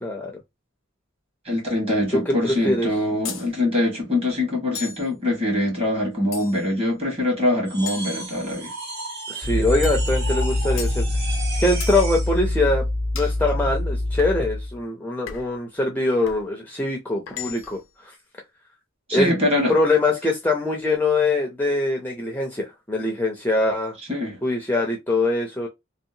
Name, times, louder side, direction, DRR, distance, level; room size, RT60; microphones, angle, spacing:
voice 1, 0.0-0.3 2.1-2.9 9.3-11.1 11.6-12.9 13.1-18.1 19.1-19.3 19.7-24.0 24.4-25.7, left 2 dB, 10° left, 0.5 m, -23 dB
voice 2, 1.4-8.7 19.1-19.7 24.1-24.4, left 1 dB, 30° right, 1.2 m, -23 dB
sound 1, 3.2-3.5 4.7-5.1 6.3-6.8 7.9-8.8 9.8-10.1 10.8-11.0 11.8-12.0 13.1-13.4 14.2-14.4 15.3-15.6 16.2-16.5 17.3-17.9, left 7 dB, 85° left, 0.6 m, -36 dB
sound 2, 7.7-12.4, right 2 dB, 55° right, 1.0 m, -34 dB
sound 3, 9.4-14.8, left 1 dB, 85° right, 1.5 m, -25 dB
2.7 x 2.2 x 2.6 m
head